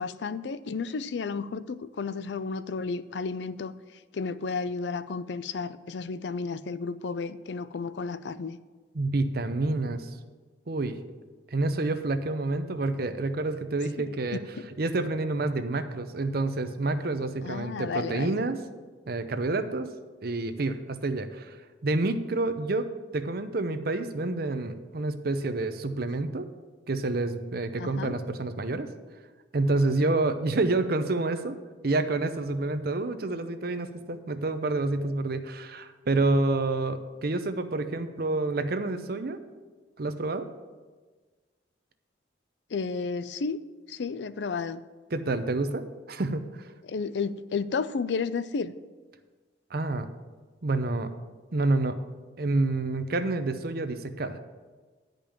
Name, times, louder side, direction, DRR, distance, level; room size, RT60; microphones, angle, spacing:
voice 1, 0.0-3.8 4.1-8.6 14.1-14.7 17.4-18.4 27.8-28.2 42.7-43.6 43.9-44.8 46.8-48.7, left 4 dB, 75° left, 14 dB, 0.4 m, -32 dB
voice 2, 8.9-10.1 10.7-11.0 11.5-14.4 14.8-18.6 19.1-19.9 20.2-21.6 21.8-26.5 26.9-28.9 29.5-31.6 31.8-39.4 40.0-40.5 45.1-46.5 49.7-50.1 50.6-51.1 51.5-51.9 52.4-54.4, right 2 dB, 55° right, 9 dB, 0.7 m, -28 dB
10.5 x 5.3 x 7.6 m, 1.4 s
head